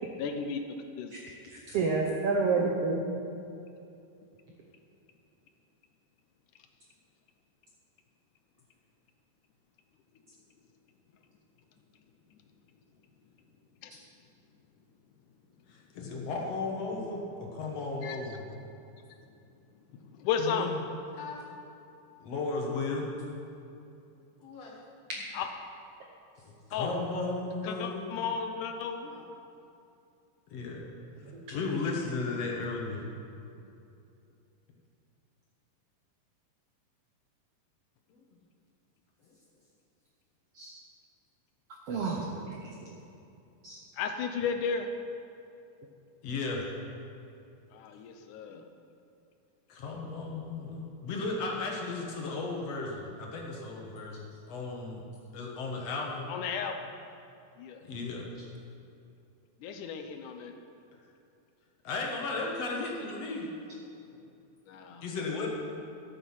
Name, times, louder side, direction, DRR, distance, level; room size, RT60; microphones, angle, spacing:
voice 1, 0.2-0.6 1.0-1.2 13.8-13.9 18.0-18.4 20.1-20.7 25.3-25.5 26.7-26.9 27.6-29.1 44.0-44.9 47.7-48.6 55.9-56.0 56.3-56.8 57.6-57.8 59.6-60.5 64.7-65.1, left 6 dB, 75° left, 6 dB, 2.1 m, -34 dB
voice 2, 1.7-3.0 31.3-31.4 40.6-40.7 41.9-42.7 43.6-43.8, right 4 dB, 75° right, 0 dB, 1.4 m, -29 dB
voice 3, 15.7-18.4 20.4-20.8 21.1-21.4 22.2-23.1 24.4-24.8 26.4-28.3 29.1-29.2 30.5-30.8 31.5-33.0 46.2-46.6 49.7-54.2 54.5-55.0 55.3-56.3 57.8-58.3 61.8-63.9 65.0-65.5, left 3 dB, 60° left, -1 dB, 2.0 m, -35 dB
13.5 x 7.9 x 5.6 m, 2.7 s
omnidirectional pair, 3.8 m